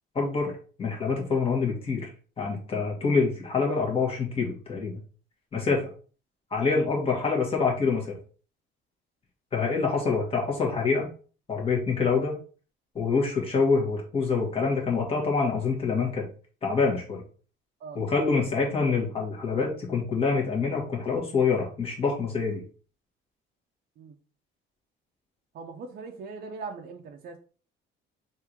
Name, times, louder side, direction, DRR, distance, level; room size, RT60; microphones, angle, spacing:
voice 1, 0.1-0.5 0.8-2.1 2.4-4.9 5.5-5.9 6.5-8.1 9.5-11.0 11.5-12.3 12.9-16.2 16.6-17.2 17.9-22.6, left 4 dB, 30° left, -1 dB, 1.4 m, -26 dB
voice 2, 25.5-27.4, right 4 dB, 50° right, 2 dB, 0.6 m, -40 dB
3.6 x 2.7 x 4.5 m, 0.40 s
cardioid pair, 145°, 21 cm